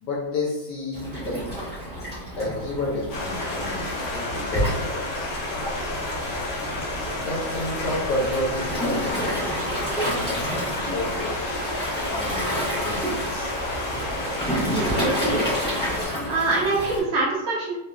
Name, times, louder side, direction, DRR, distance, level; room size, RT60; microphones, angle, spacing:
voice 1, 0.0-1.4 2.3-3.9 4.1-5.3 6.6-6.7 7.2-9.7 9.9-11.4 12.1-13.5, left 1 dB, 65° left, -6 dB, 1.3 m, -30 dB
Waves surf, 0.9-17.0, equal, 10° left, 0.7 m, -30 dB
Stream, 3.1-16.0, left 1 dB, 90° left, 1.7 m, -30 dB
voice 2, 14.7-15.4 16.3-17.7, right 3 dB, 70° right, -5 dB, 0.6 m, -25 dB
4.8 x 2.2 x 2.3 m, 0.93 s
omnidirectional pair, 2.1 m